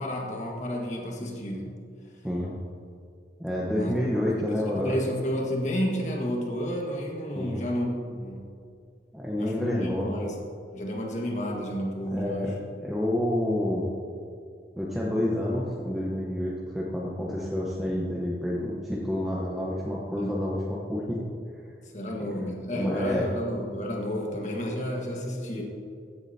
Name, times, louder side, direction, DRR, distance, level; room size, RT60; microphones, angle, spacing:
voice 1, 0.0-1.8 3.7-3.9 4.3-8.5 9.4-10.4 10.7-12.6 20.2-20.4 21.9-25.6, equal, 40° left, -1 dB, 1.6 m, -31 dB
voice 2, 3.4-5.0 7.3-7.6 9.1-10.1 12.1-12.5 12.8-13.9 14.8-21.3 22.8-23.2, left 1 dB, ahead, -5 dB, 1.0 m, -29 dB
15.5 x 8.8 x 2.8 m, 2.4 s
head